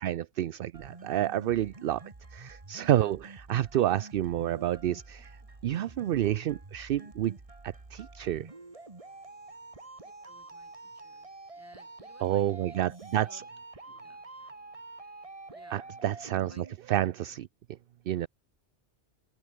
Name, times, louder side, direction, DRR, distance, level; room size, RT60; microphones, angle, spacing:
voice 1, 0.0-2.0 2.3-5.3 5.6-7.3 7.6-8.5 12.2-13.4 15.7-17.5 18.1-18.3, right 12 dB, 60° right, 0.6 m, -29 dB
sound 1, 0.7-16.7, right 2 dB, 30° right, 1.9 m, -48 dB
voice 2, 5.1-5.5 10.0-13.4 13.9-14.2 15.5-15.9 16.5-16.7, right 1 dB, 10° right, 4.1 m, -59 dB
omnidirectional pair, 1.2 m